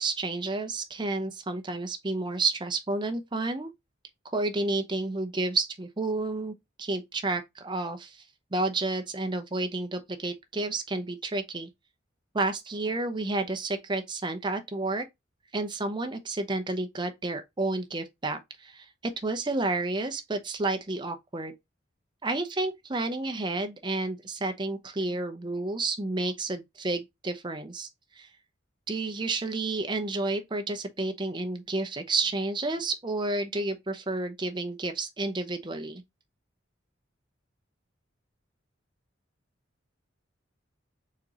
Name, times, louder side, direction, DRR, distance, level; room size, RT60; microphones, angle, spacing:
voice 1, 0.0-3.7 4.3-8.2 8.5-11.7 12.3-15.0 15.5-21.5 22.2-27.9 28.2-28.3 28.9-36.0, right 2 dB, 25° right, 0.7 m, -30 dB
4.3 x 3.7 x 2.9 m
head